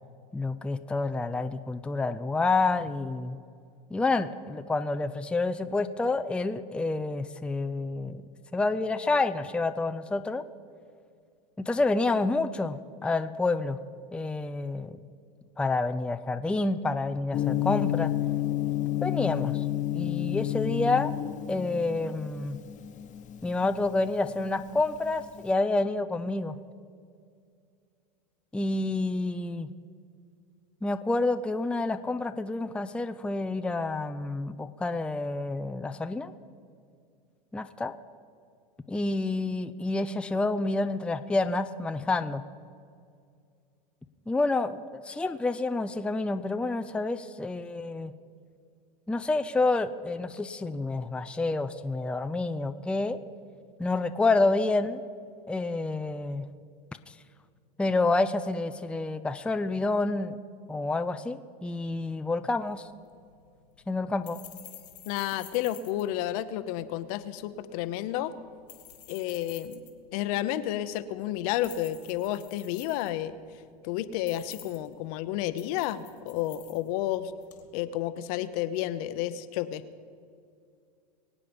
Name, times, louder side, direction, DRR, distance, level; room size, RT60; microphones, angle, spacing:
voice 1, 0.3-3.4 3.9-8.2 8.5-10.4 11.6-13.8 14.1-15.0 15.6-18.1 19.0-19.6 19.9-21.1 21.5-22.6 23.4-26.6 28.5-29.7 30.8-36.3 37.5-37.9 38.9-42.4 44.3-48.1 49.1-53.2 53.8-55.0 55.5-56.5 57.1-57.2 57.8-60.4 60.7-62.9 63.9-64.4, left 3 dB, 5° left, 9 dB, 0.5 m, -28 dB
Gong, 17.3-25.4, left 12 dB, 40° left, 1.2 m, -30 dB
sound 1, 62.6-77.7, left 12 dB, 90° left, 2.3 m, -52 dB
voice 2, 65.1-68.3 69.1-69.8 70.1-73.3 73.8-77.3 77.7-79.8, left 13 dB, 65° left, 12 dB, 0.9 m, -31 dB
23.5 x 8.5 x 5.3 m, 2.3 s
hypercardioid pair, 105°, 20 cm